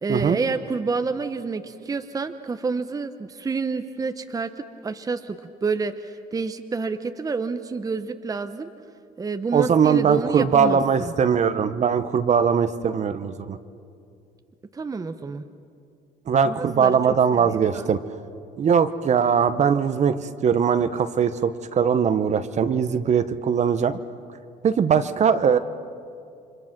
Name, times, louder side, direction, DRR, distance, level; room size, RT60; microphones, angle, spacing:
voice 1, 0.0-8.7 9.2-11.1 14.7-15.4 16.5-17.0 17.3-17.9, right 4 dB, 20° right, 8 dB, 0.9 m, -29 dB
voice 2, 9.5-13.6 16.3-18.0 18.6-24.0 24.6-25.6, right 7 dB, 45° right, 11 dB, 1.0 m, -21 dB
30.0 x 24.5 x 6.0 m, 2.4 s
cardioid pair, 110°, 17 cm